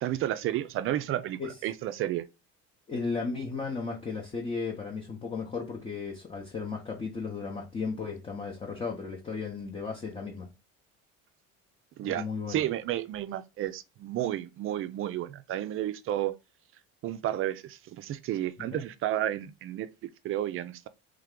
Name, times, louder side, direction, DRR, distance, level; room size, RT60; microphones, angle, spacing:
voice 1, 0.0-2.3 12.0-16.4 17.0-20.9, right 12 dB, 45° right, 0.4 m, -32 dB
voice 2, 2.9-10.5 12.0-12.6 18.6-18.8, left 4 dB, 20° left, 0.7 m, -35 dB
3.4 x 3.3 x 3.6 m
cardioid pair, 140°, 31 cm